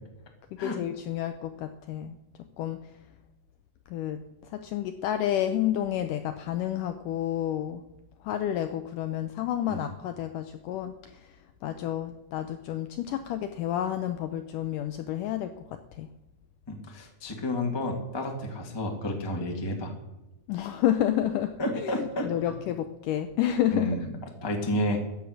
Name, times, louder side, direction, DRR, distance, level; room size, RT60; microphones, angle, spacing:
voice 1, 0.6-2.2 2.6-2.8 3.9-4.2 4.5-7.8 8.2-11.4 11.6-15.5 16.0-16.1 20.5-24.1, left 11 dB, 80° left, 9 dB, 1.9 m, -30 dB
voice 2, 16.7-19.9 21.6-22.3 23.7-24.0 24.4-25.0, left 1 dB, 15° left, 2 dB, 1.0 m, -30 dB
15.0 x 9.8 x 6.5 m, 1.0 s
omnidirectional pair, 4.5 m